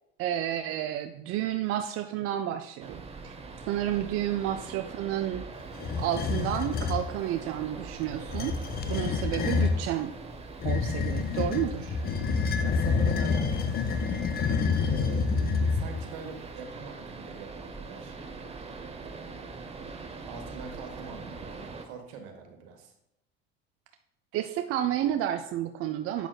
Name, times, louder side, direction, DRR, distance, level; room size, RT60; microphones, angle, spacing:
voice 1, 0.2-3.4 3.7-5.5 6.0-8.6 8.9-10.1 10.6-12.0 24.3-26.3, right 11 dB, 45° right, 7 dB, 0.4 m, -31 dB
sound 1, 2.8-21.9, right 4 dB, 20° right, 0.9 m, -43 dB
sound 2, 5.8-7.1 8.2-9.8 10.6-16.1, left 5 dB, 30° left, 0.6 m, -28 dB
voice 2, 12.6-13.7 14.8-15.3 15.7-18.2 19.0-19.5 20.2-22.9, right 5 dB, 70° right, 4 dB, 1.4 m, -43 dB
8.1 x 6.0 x 2.3 m, 0.84 s
hypercardioid pair, 75°, 31 cm